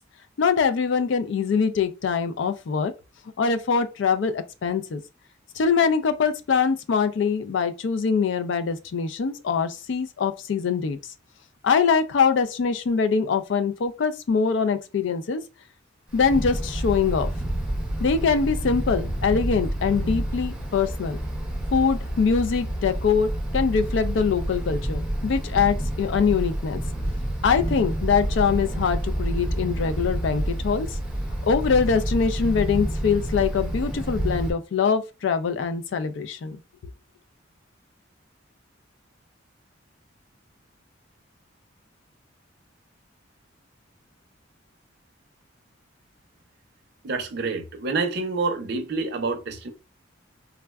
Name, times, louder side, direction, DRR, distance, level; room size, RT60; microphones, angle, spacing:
voice 1, 0.4-2.9 3.4-5.0 5.6-11.0 11.6-15.4 16.1-17.3 18.0-21.2 21.7-26.8 27.4-31.0 31.4-36.6, left 5 dB, 65° left, 0.4 m, -23 dB
Wind, 16.1-34.5, right 1 dB, 5° right, 0.5 m, -28 dB
voice 2, 47.0-49.7, right 3 dB, 55° right, 0.5 m, -27 dB
3.4 x 2.1 x 2.2 m
head